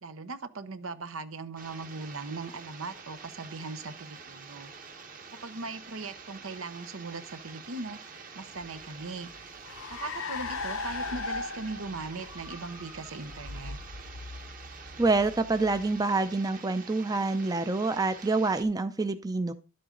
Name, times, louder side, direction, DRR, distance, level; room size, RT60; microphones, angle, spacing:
voice 1, 0.0-4.7 5.4-8.0 8.3-9.3 9.9-13.8, right 3 dB, 75° right, 0.9 m, -39 dB
sound 1, 1.6-18.6, right 5 dB, 40° right, 1.3 m, -47 dB
Car, 8.6-16.4, left 4 dB, 70° left, 0.8 m, -39 dB
voice 2, 15.0-19.5, right 3 dB, 20° right, 0.5 m, -27 dB
11.0 x 7.8 x 3.8 m
head